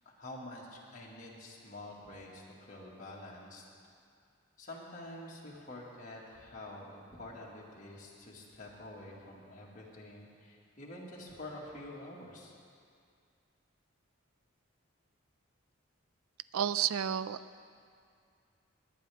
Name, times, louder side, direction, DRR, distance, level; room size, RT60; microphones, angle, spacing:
voice 1, 0.1-3.7 4.6-12.5, left 1 dB, 35° left, -4 dB, 1.9 m, -47 dB
voice 2, 16.5-17.6, right 9 dB, 80° right, 15 dB, 0.3 m, -32 dB
21.5 x 8.7 x 3.5 m, 2.3 s
head